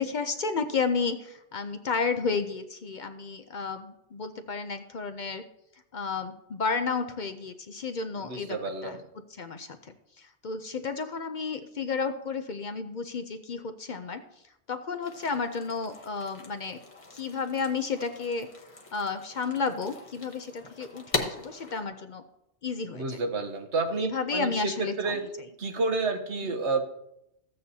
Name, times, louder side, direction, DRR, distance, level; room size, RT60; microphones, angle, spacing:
voice 1, 0.0-5.4 5.9-9.0 9.4-14.2 14.7-16.8 17.1-18.5 18.9-22.2 22.6-23.2 23.9-25.3 26.4-26.5, left 4 dB, 50° left, 8 dB, 0.6 m, -32 dB
voice 2, 8.2-9.0 22.9-24.7 25.0-25.2 25.6-26.8, right 3 dB, 80° right, 4 dB, 1.3 m, -30 dB
sound 1, 15.0-21.8, left 3 dB, 30° left, 1.1 m, -40 dB
14.5 x 8.6 x 2.7 m, 0.83 s
omnidirectional pair, 1.2 m